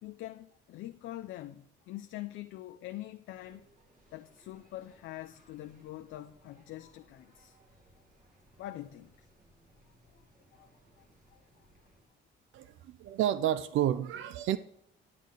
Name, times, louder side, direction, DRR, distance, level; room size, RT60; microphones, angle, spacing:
voice 1, 0.0-3.7 4.1-7.6 8.6-9.1 10.6-10.7 11.0-11.7, left 14 dB, 80° left, 0.5 m, -44 dB
sound 1, 3.3-12.1, right 1 dB, 45° right, 2.2 m, -64 dB
voice 2, 12.5-14.6, right 11 dB, 80° right, 0.5 m, -30 dB
10.5 x 7.3 x 3.8 m
cardioid pair, 90°, 20 cm